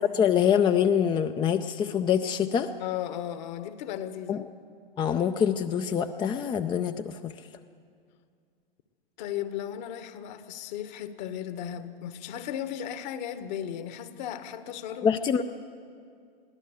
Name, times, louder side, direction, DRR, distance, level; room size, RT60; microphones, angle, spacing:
voice 1, 0.1-2.7 4.3-4.4 5.0-7.3 15.0-15.4, left 8 dB, 15° left, 0.5 m, -25 dB
voice 2, 2.8-4.4 9.2-15.2, left 10 dB, 50° left, 1.5 m, -36 dB
22.5 x 16.0 x 8.1 m
hypercardioid pair, 110°, 29 cm